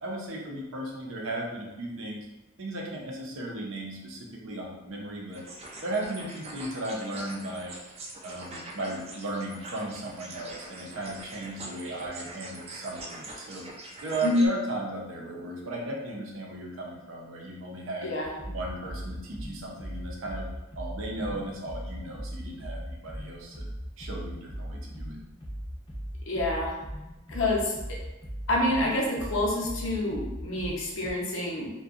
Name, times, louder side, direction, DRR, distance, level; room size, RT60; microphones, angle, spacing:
voice 1, 0.0-2.3 2.6-5.4 5.8-7.7 8.2-13.6 14.0-18.1 18.5-20.5 20.8-23.7 24.0-25.2, right 2 dB, 85° right, -1 dB, 0.6 m, -36 dB
sound 1, 5.3-14.5, right 2 dB, 30° right, 0.3 m, -43 dB
sound 2, 18.2-31.1, equal, 25° left, 0.5 m, -39 dB
voice 2, 26.3-26.8 27.3-28.0 28.5-31.7, left 1 dB, 80° left, -3 dB, 0.6 m, -28 dB
2.6 x 2.2 x 2.4 m, 1.0 s
head